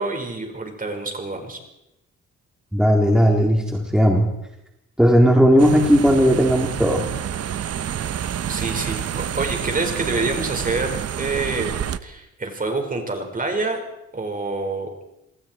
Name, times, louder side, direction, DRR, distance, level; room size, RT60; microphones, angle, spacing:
voice 1, 0.0-1.6 8.5-13.8 14.1-14.9, right 3 dB, 30° right, 4 dB, 5.4 m, -27 dB
voice 2, 2.7-4.3 5.0-7.0, equal, ahead, 0 dB, 3.7 m, -16 dB
sound 1, 5.6-12.0, right 9 dB, 55° right, 1.0 m, -28 dB
28.0 x 21.0 x 4.7 m, 0.89 s
cardioid pair, 90°, 30 cm